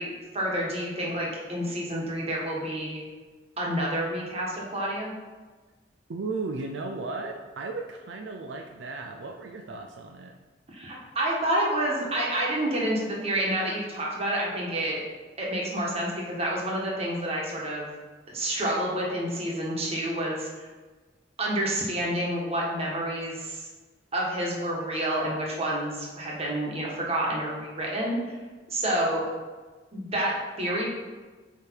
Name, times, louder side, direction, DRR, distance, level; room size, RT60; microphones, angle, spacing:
voice 1, 0.0-3.0 3.6-5.2 10.7-15.0 15.4-17.9 18.3-20.7 21.4-23.7 24.1-28.1 28.7-29.3 29.9-30.9, right 1 dB, 35° right, -3 dB, 1.5 m, -29 dB
voice 2, 6.1-10.3, right 3 dB, 80° right, 2 dB, 0.5 m, -35 dB
8.1 x 3.5 x 4.5 m, 1.3 s
head